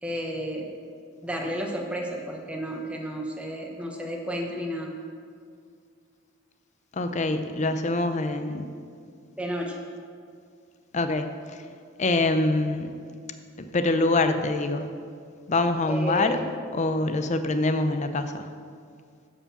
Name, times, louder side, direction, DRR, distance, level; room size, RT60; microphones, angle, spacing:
voice 1, 0.0-0.7 1.2-4.9 9.4-9.8 15.9-16.5, equal, 5° right, 0 dB, 1.0 m, -32 dB
voice 2, 6.9-8.7 10.9-11.3 12.0-12.9 13.6-14.9 15.5-16.4 16.7-18.5, left 2 dB, 35° left, 9 dB, 0.5 m, -25 dB
10.5 x 5.0 x 7.0 m, 2.2 s
head